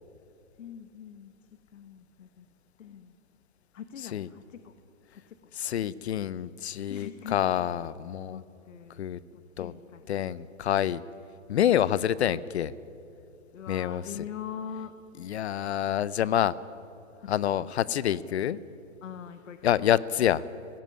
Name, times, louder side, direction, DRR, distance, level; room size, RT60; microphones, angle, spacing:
voice 1, 0.6-1.3 1.7-2.5 2.8-3.1 3.7-4.7 5.1-5.4 6.9-7.7 8.2-9.1 9.3-10.1 13.5-14.9 17.5-17.6 19.0-19.7, left 8 dB, 75° left, 10 dB, 1.2 m, -43 dB
voice 2, 5.5-8.4 9.0-9.2 9.6-9.7 10.1-11.0 11.5-12.7 13.7-14.0 15.2-16.5 17.3-18.6 19.6-20.4, left 10 dB, 55° left, 19 dB, 0.7 m, -27 dB
17.5 x 15.0 x 9.8 m, 2.5 s
hypercardioid pair, 160°, 38 cm